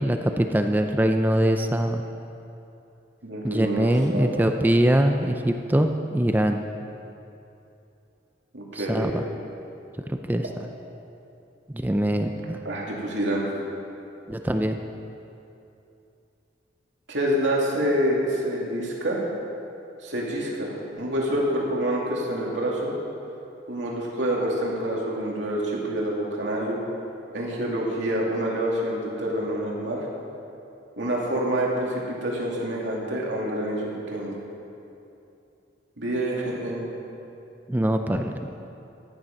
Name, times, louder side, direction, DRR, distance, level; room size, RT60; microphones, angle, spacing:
voice 1, 0.0-2.0 3.4-6.6 8.7-9.2 10.1-10.4 11.7-12.6 14.3-14.8 37.7-38.5, right 1 dB, 10° right, 5 dB, 0.4 m, -23 dB
voice 2, 3.2-4.5 8.5-9.1 12.6-13.5 17.1-19.2 20.0-22.9 23.7-26.8 27.3-30.1 31.0-34.4 36.0-36.9, right 1 dB, 75° right, -3 dB, 2.6 m, -27 dB
14.5 x 10.0 x 5.3 m, 2.8 s
head